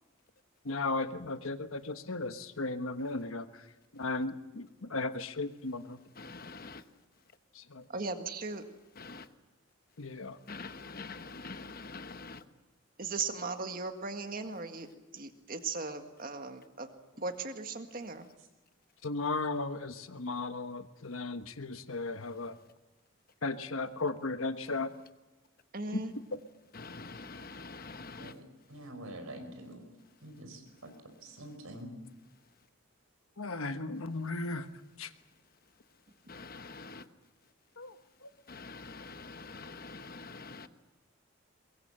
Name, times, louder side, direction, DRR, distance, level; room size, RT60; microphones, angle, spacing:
voice 1, 0.6-3.5 3.9-6.0 7.7-7.8 10.0-10.4 19.0-22.5 23.4-24.9 33.4-34.7 35.0-35.1 37.8-37.9, left 3 dB, 80° left, 9 dB, 1.3 m, -35 dB
voice 2, 6.2-6.8 9.0-9.3 10.5-12.4 26.7-28.3 36.3-37.1 38.5-40.7, left 3 dB, 45° left, 10 dB, 1.0 m, -45 dB
voice 3, 7.9-8.6 13.0-14.9 15.1-18.3 25.7-26.1, right 4 dB, 45° right, 6 dB, 1.8 m, -38 dB
voice 4, 28.7-29.8 30.2-30.6 31.2-31.9, right 1 dB, 90° right, 6 dB, 5.2 m, -45 dB
23.0 x 22.0 x 7.7 m, 1.1 s
head